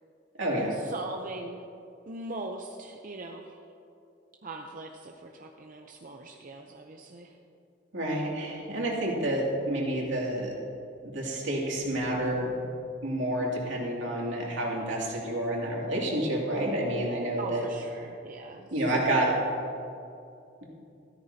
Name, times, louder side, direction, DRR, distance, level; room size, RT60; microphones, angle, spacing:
voice 1, 0.6-1.7 2.1-3.6 4.4-7.4 17.4-19.4, right 2 dB, 45° right, 2 dB, 0.6 m, -40 dB
voice 2, 7.9-10.5 11.0-12.5 13.0-17.6 18.7-19.3, right 1 dB, 80° right, -3 dB, 2.5 m, -29 dB
13.5 x 13.0 x 2.8 m, 2.6 s
head